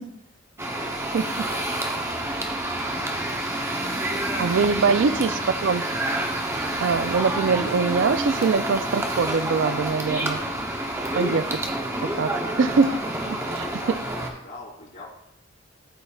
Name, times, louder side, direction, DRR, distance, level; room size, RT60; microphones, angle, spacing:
voice 1, 0.6-3.4 3.7-5.2 12.4-13.1 13.5-15.1, left 2 dB, 80° left, -5 dB, 3.0 m, -44 dB
sound 1, 0.6-14.3, right 1 dB, 15° right, 0.8 m, -28 dB
voice 2, 4.4-5.9 6.8-10.4 11.1-11.5 12.0-12.3 12.6-12.9 13.5-13.7, right 5 dB, 75° right, 12 dB, 0.4 m, -23 dB
12.5 x 5.1 x 2.4 m, 0.83 s
head